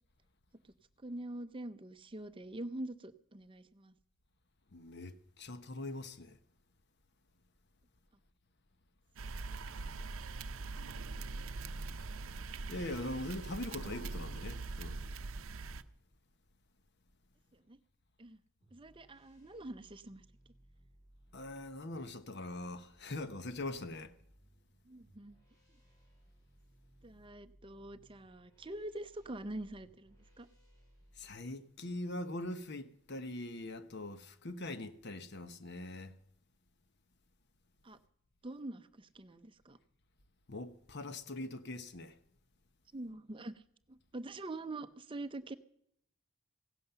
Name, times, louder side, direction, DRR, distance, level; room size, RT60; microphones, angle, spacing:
voice 1, 1.0-3.9 9.2-9.4 17.7-17.8 18.2-18.4 18.7-20.2 24.8-25.4 27.0-30.5 37.8-38.0 38.4-39.8 42.9-43.6 43.9-45.5, right 2 dB, 25° right, 0.6 m, -45 dB
voice 2, 4.7-6.4 12.7-15.0 21.3-24.1 31.2-36.1 40.5-42.2, left 2 dB, 50° left, 1.0 m, -42 dB
sound 1, 9.2-15.8, right 3 dB, 65° right, 0.7 m, -42 dB
sound 2, 18.6-31.4, equal, 15° left, 4.5 m, -65 dB
16.0 x 11.5 x 6.9 m
head